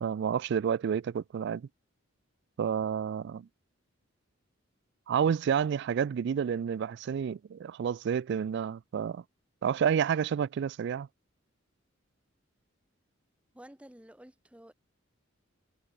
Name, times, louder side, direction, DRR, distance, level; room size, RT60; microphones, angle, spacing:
voice 1, 0.0-1.7 2.6-3.5 5.1-9.2 9.6-11.1, right 7 dB, 60° right, 0.3 m, -29 dB
voice 2, 13.5-14.7, right 1 dB, 5° right, 1.1 m, -51 dB
head